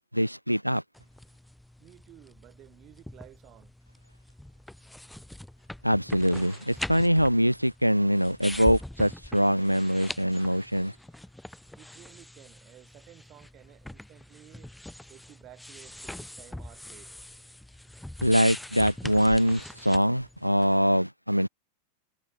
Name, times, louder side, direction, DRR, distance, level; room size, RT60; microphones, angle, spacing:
voice 1, 0.1-0.8 5.8-10.9 18.2-21.5, equal, 90° right, 0.4 m, -23 dB
sound 1, 0.9-20.8, left 1 dB, 5° left, 1.6 m, -42 dB
voice 2, 1.8-3.7 11.8-14.7 15.1-17.1, right 14 dB, 35° right, 3.8 m, -54 dB
figure-of-eight pair, 90°, 0 cm